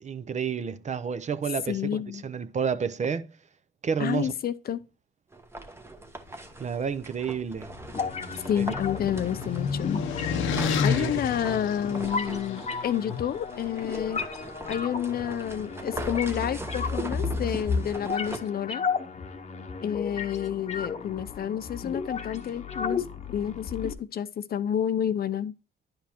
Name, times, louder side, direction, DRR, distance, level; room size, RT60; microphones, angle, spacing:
voice 1, 0.0-3.3 3.8-4.3 6.6-7.7 8.6-8.7 11.0-11.1 11.9-12.0, right 6 dB, 35° right, 0.6 m, -30 dB
voice 2, 1.7-2.2 4.0-4.8 8.5-10.0 10.8-14.2 14.7-18.8 19.8-25.5, left 9 dB, 50° left, 0.5 m, -29 dB
sound 1, 5.3-9.9 10.6-18.4, right 2 dB, 10° right, 0.9 m, -40 dB
sound 2, 7.4-12.6, left 6 dB, 80° left, 0.8 m, -30 dB
sound 3, 7.9-23.9, left 5 dB, 35° left, 0.9 m, -34 dB
10.5 x 5.2 x 2.8 m
cardioid pair, 90°, 20 cm